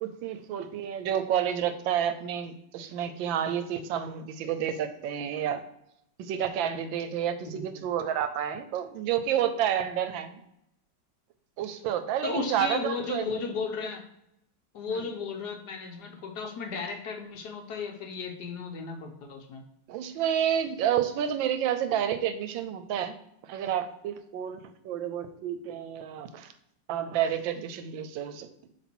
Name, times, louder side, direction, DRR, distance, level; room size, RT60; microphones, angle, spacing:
voice 1, 0.0-5.6 6.2-10.4 11.6-13.4 14.9-15.0 19.9-23.2 23.4-26.5 26.9-28.5, right 9 dB, 80° right, 10 dB, 1.3 m, -30 dB
voice 2, 12.2-14.0 14.7-19.6, left 4 dB, 65° left, 3 dB, 1.2 m, -35 dB
7.5 x 3.0 x 4.3 m, 0.77 s
omnidirectional pair, 2.1 m